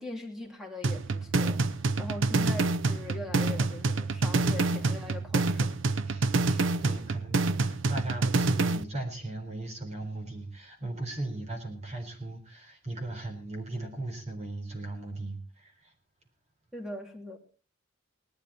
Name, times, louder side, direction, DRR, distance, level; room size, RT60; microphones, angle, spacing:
voice 1, 0.0-5.8 16.7-17.4, left 2 dB, ahead, 2 dB, 3.1 m, -41 dB
sound 1, 0.8-8.8, right 3 dB, 80° right, 0.7 m, -27 dB
voice 2, 6.1-15.9, right 2 dB, 35° right, 4 dB, 4.0 m, -38 dB
19.0 x 12.0 x 4.3 m, 0.38 s
head